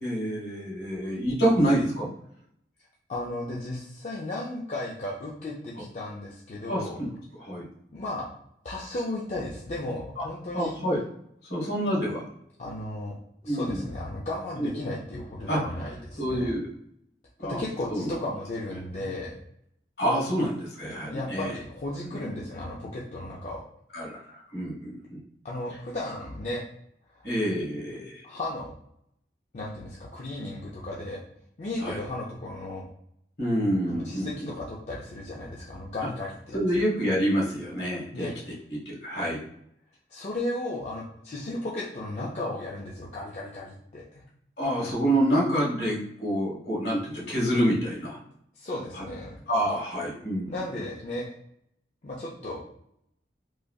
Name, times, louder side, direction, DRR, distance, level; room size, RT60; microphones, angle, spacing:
voice 1, 0.0-2.1 6.7-7.1 7.4-7.7 10.1-10.2 10.5-11.0 11.5-12.3 13.4-13.8 14.6-14.7 15.5-15.6 16.2-16.6 17.4-17.6 17.9-18.1 20.0-21.5 22.0-22.2 23.9-25.2 27.2-28.2 31.8-32.0 33.4-34.5 36.5-38.3 38.7-39.4 44.6-48.2 48.9-49.0 49.5-50.5, equal, 65° left, -4 dB, 1.4 m, -27 dB
voice 2, 3.1-7.0 7.9-8.3 8.6-10.8 12.6-13.2 13.4-16.5 17.4-19.4 21.1-23.6 25.4-26.6 27.1-27.2 28.2-28.7 29.5-31.2 31.6-32.8 33.9-36.8 38.1-38.3 40.1-44.2 48.6-49.4 50.4-51.3 52.0-52.6, left 1 dB, 40° left, -5 dB, 0.4 m, -35 dB
3.2 x 2.6 x 2.3 m, 0.72 s
head